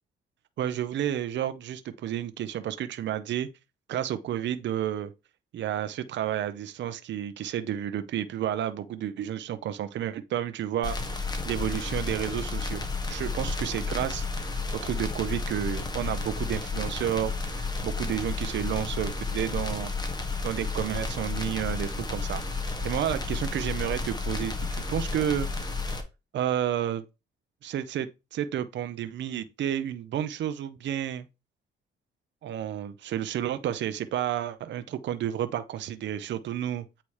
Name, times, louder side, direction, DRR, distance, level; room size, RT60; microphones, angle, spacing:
voice 1, 0.6-3.5 3.9-5.1 5.5-14.5 14.8-19.9 20.4-25.5 25.8-26.0 26.3-27.0 27.6-31.3 32.4-36.8, right 10 dB, 65° right, 0.7 m, -31 dB
sound 1, 10.8-26.0, left 3 dB, 20° left, 1.3 m, -32 dB
8.4 x 2.9 x 4.8 m
cardioid pair, 90°, 20 cm